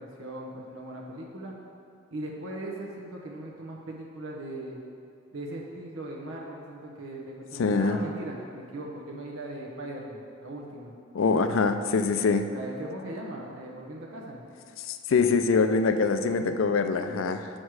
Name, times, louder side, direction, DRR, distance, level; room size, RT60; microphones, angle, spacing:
voice 1, 0.0-1.5 2.1-4.8 5.3-10.9 12.5-14.5, right 1 dB, 85° right, -2 dB, 0.9 m, -39 dB
voice 2, 7.6-8.0 11.1-12.5 14.9-17.5, left 4 dB, 80° left, 8 dB, 0.4 m, -24 dB
6.4 x 6.0 x 4.7 m, 2.4 s
head